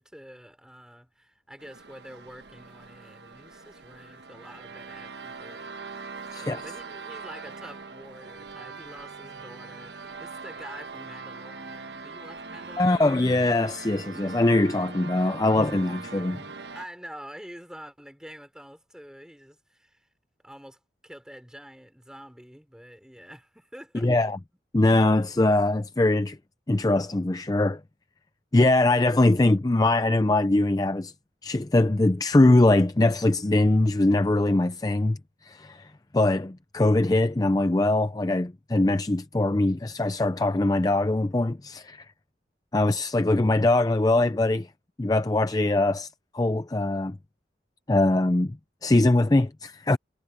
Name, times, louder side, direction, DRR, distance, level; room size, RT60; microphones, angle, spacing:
voice 1, 0.0-5.7 6.2-13.1 16.7-20.1 20.4-24.1, equal, 5° right, 5.6 m, -47 dB
sound 1, 1.6-16.9, right 4 dB, 75° right, 1.3 m, -41 dB
voice 2, 6.3-6.6 12.8-16.4 23.9-24.4 24.7-26.4 26.7-27.8 28.5-31.1 31.4-42.1 42.7-44.7 45.0-47.2 47.9-50.0, left 2 dB, 20° left, 0.5 m, -22 dB
head